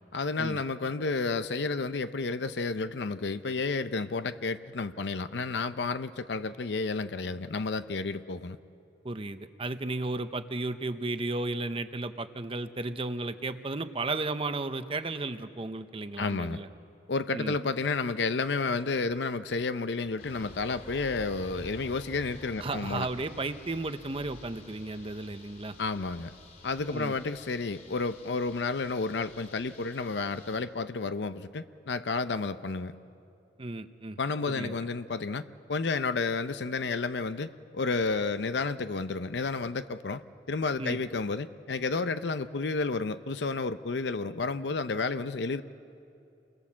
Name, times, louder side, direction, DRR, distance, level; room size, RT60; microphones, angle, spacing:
voice 1, 0.1-8.6 16.2-16.6 17.1-23.1 25.8-26.3 26.6-32.9 34.2-40.2 40.5-45.6, left 4 dB, 75° left, 12 dB, 0.6 m, -31 dB
voice 2, 9.0-16.7 17.3-17.5 22.6-25.8 26.9-27.1 33.6-34.2 34.5-34.7 40.8-41.0, right 2 dB, 30° right, 10 dB, 0.8 m, -34 dB
sound 1, 20.2-30.6, left 2 dB, 55° left, 4.2 m, -50 dB
28.5 x 22.0 x 7.4 m, 2.7 s
head